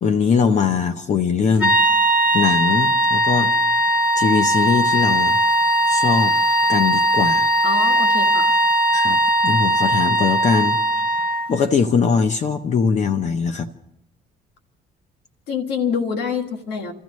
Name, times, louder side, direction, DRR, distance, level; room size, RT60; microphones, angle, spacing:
voice 1, 0.0-1.8 2.3-3.5 4.2-5.4 5.9-6.3 6.7-7.5 8.9-10.8 11.5-13.7, left 6 dB, 45° left, 9 dB, 0.7 m, -21 dB
sound 1, 1.6-11.6, right 1 dB, 10° right, 1.4 m, -18 dB
voice 2, 7.6-8.6 15.5-16.9, left 6 dB, 80° left, 5 dB, 1.6 m, -26 dB
29.0 x 14.0 x 3.1 m, 0.79 s
cardioid pair, 110°, 17 cm